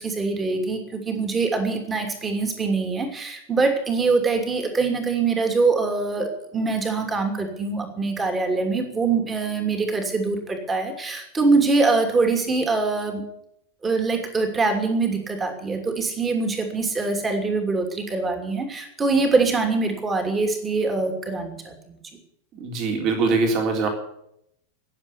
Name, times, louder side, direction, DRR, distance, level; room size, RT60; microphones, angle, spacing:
voice 1, 0.0-13.2 13.8-22.0, right 3 dB, 15° right, 5 dB, 2.8 m, -23 dB
voice 2, 22.6-23.9, right 4 dB, 40° right, 2 dB, 3.6 m, -22 dB
19.0 x 7.6 x 9.5 m, 0.76 s
figure-of-eight pair, 90°, 0 cm